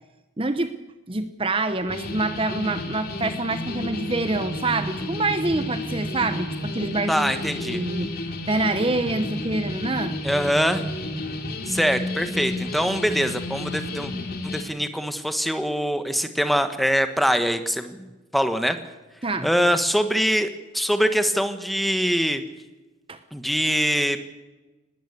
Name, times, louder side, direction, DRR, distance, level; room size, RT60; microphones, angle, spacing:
voice 1, 0.4-0.7 1.1-8.1 8.5-10.2 19.2-19.5 23.1-23.2, right 2 dB, 30° right, 10 dB, 0.9 m, -26 dB
sound 1, 1.9-14.6, left 2 dB, 50° left, 2.8 m, -31 dB
voice 2, 7.1-7.8 10.2-10.9 11.7-14.1 14.5-18.8 19.4-22.4 23.3-24.2, equal, ahead, 9 dB, 1.3 m, -23 dB
19.5 x 17.5 x 8.4 m, 1.1 s
head